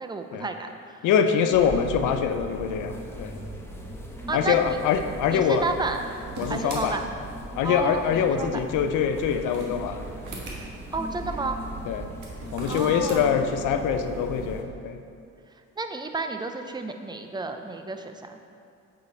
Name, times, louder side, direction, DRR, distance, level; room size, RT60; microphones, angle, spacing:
voice 1, 0.0-1.0 4.3-4.8 5.3-6.0 6.5-7.0 7.6-8.6 10.9-11.6 12.7-13.3 15.8-18.4, right 3 dB, 15° right, 6 dB, 0.5 m, -31 dB
voice 2, 1.0-3.3 4.3-5.6 6.4-7.0 7.6-10.0 11.9-12.1 12.5-15.0, left 7 dB, 85° left, 7 dB, 0.6 m, -24 dB
sound 1, 1.5-14.6, right 1 dB, 10° left, 0.9 m, -38 dB
sound 2, 5.8-6.8 9.1-10.6 12.1-13.2, right 2 dB, 85° right, 1.5 m, -37 dB
8.3 x 4.9 x 3.9 m, 2.5 s
cardioid pair, 90°, 30 cm